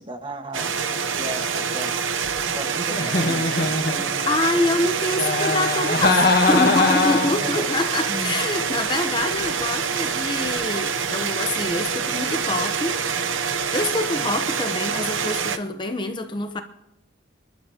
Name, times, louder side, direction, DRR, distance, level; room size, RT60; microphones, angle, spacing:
voice 1, 0.0-1.9 2.5-4.1 7.2-7.8 8.1-8.4 14.1-14.4, right 1 dB, 25° right, 1.4 m, -36 dB
sound 1, 0.5-15.6, right 6 dB, 85° right, 0.8 m, -26 dB
Giggle, 2.9-4.4 5.2-7.5, left 3 dB, 50° left, 1.5 m, -22 dB
voice 2, 4.2-13.0 13.7-16.6, left 2 dB, 25° left, 0.8 m, -26 dB
29.0 x 11.5 x 2.9 m
head